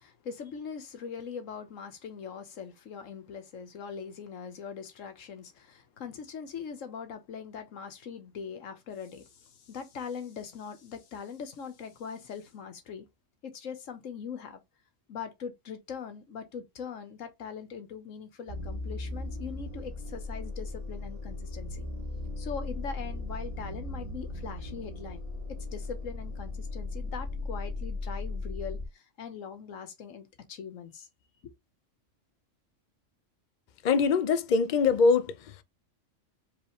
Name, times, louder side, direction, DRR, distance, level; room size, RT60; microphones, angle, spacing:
voice 1, 0.0-13.1 13.4-14.6 15.1-21.9 22.4-25.2 25.7-31.1, left 6 dB, 80° left, 1.4 m, -41 dB
sound 1, 18.5-28.9, left 2 dB, 35° right, 1.1 m, -37 dB
voice 2, 33.8-35.6, left 5 dB, 60° left, 0.5 m, -23 dB
4.8 x 3.1 x 3.1 m
omnidirectional pair, 1.3 m